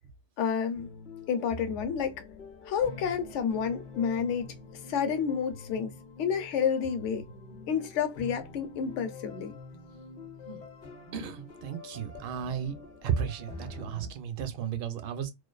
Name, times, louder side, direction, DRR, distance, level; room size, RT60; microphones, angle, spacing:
voice 1, 0.4-0.9 1.3-2.2 2.6-4.5 4.9-5.9 6.2-7.2 7.7-9.5, left 7 dB, 70° left, 0.9 m, -29 dB
sound 1, 0.7-14.1, left 3 dB, 45° left, 0.8 m, -45 dB
voice 2, 11.1-12.8 13.0-15.3, right 8 dB, 60° right, 0.7 m, -34 dB
2.5 x 2.3 x 2.2 m
omnidirectional pair, 1.3 m